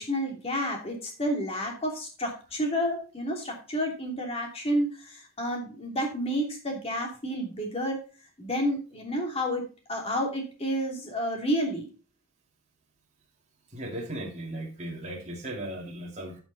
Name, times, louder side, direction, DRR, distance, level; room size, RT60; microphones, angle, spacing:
voice 1, 0.0-8.0 8.4-11.9, equal, 30° left, 1 dB, 2.8 m, -30 dB
voice 2, 13.7-16.4, right 1 dB, 35° right, -2 dB, 2.3 m, -37 dB
11.5 x 6.1 x 4.0 m, 0.35 s
head